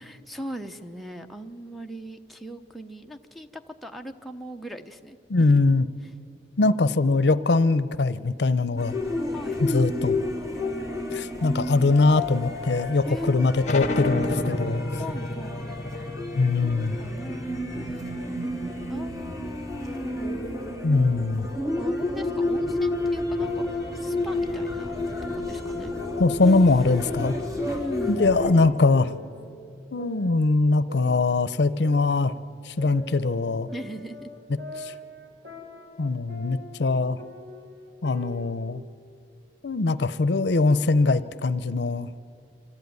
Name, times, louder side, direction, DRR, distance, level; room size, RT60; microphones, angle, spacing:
voice 1, 0.0-5.6 9.3-9.6 13.1-13.9 15.0-15.7 17.0-18.1 18.9-20.4 21.8-23.7 23.9-24.9 25.3-25.9 26.5-26.6 27.6-28.7 33.7-34.3, equal, ahead, 3 dB, 0.8 m, -39 dB
voice 2, 5.3-5.9 6.6-8.9 9.6-10.2 11.1-14.8 16.4-17.0 20.8-21.5 26.2-27.4 28.1-29.1 29.9-32.3 32.6-33.7 34.8-34.9 36.0-37.2 38.0-38.8 39.6-42.1, left 3 dB, 75° left, 15 dB, 0.6 m, -22 dB
sound 1, 8.8-28.5, left 2 dB, 20° right, 3.8 m, -31 dB
sound 2, 13.6-18.9, left 1 dB, 40° left, 1.7 m, -31 dB
sound 3, 20.9-22.0 22.4-22.9 23.4-25.0 25.5-27.0 27.3-28.8 29.0-29.5 30.0-32.4 32.8-36.9 37.2-38.5, equal, 80° right, 3.7 m, -43 dB
25.5 x 14.0 x 9.4 m, 2.6 s
head